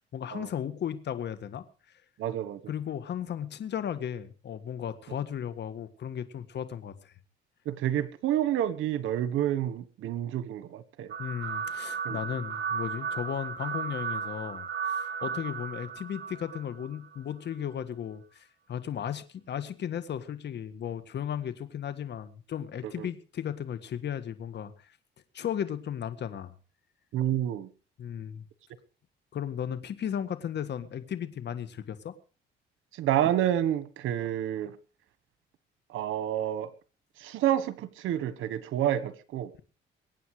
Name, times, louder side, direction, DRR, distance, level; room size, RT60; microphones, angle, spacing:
voice 1, 0.1-1.6 2.7-7.1 11.2-25.0 25.3-26.5 28.0-28.5 29.3-32.1, left 9 dB, 60° left, 1.7 m, -35 dB
voice 2, 2.2-2.6 7.6-11.1 12.0-12.2 22.8-23.1 27.1-27.7 33.0-34.7 35.9-36.7 37.2-39.5, right 11 dB, 85° right, 1.4 m, -29 dB
sound 1, 11.1-17.2, right 6 dB, 65° right, 2.0 m, -35 dB
23.0 x 9.3 x 4.9 m
cardioid pair, 90°, 20 cm